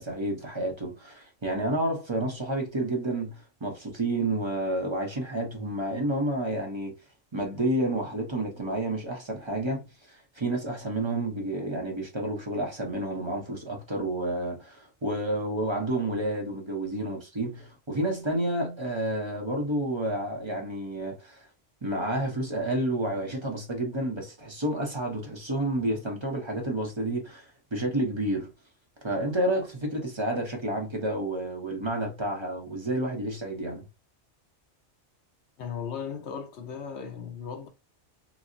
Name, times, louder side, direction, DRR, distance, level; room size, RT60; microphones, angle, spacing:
voice 1, 0.0-6.9 7.3-21.5 21.8-28.5 29.0-33.8, right 1 dB, 30° right, 0.7 m, -30 dB
voice 2, 35.6-37.7, left 7 dB, 70° left, 1.0 m, -36 dB
3.9 x 2.0 x 2.5 m
omnidirectional pair, 1.2 m